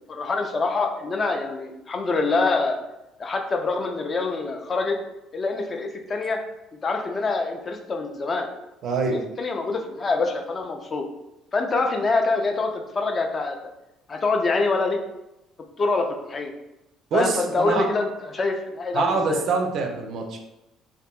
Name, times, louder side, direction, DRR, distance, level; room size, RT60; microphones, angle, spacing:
voice 1, 0.1-2.8 3.2-5.0 5.3-6.4 6.8-8.5 9.1-11.1 11.5-13.6 14.1-15.0 15.8-16.5 17.1-19.4, left 3 dB, 35° left, 3 dB, 0.4 m, -25 dB
voice 2, 8.8-9.2 17.1-17.9 18.9-20.4, right 4 dB, 50° right, 3 dB, 0.4 m, -24 dB
2.6 x 2.5 x 2.3 m, 0.91 s
figure-of-eight pair, 50°, 0 cm